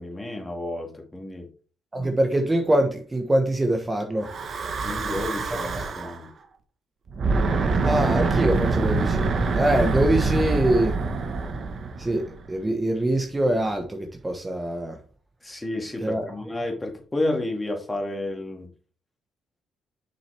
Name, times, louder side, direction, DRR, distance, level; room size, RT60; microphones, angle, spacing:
voice 1, 0.0-1.5 4.8-6.3 15.4-18.7, left 2 dB, 15° left, 2.2 m, -31 dB
voice 2, 1.9-4.3 5.5-5.8 7.8-9.3 9.6-11.0 12.0-15.0 16.0-16.3, right 1 dB, 20° right, 1.1 m, -24 dB
Breathing / Wind, 4.2-6.2 7.1-12.5, right 3 dB, 50° right, 1.2 m, -25 dB
7.4 x 6.0 x 3.4 m
cardioid pair, 90°, 0 cm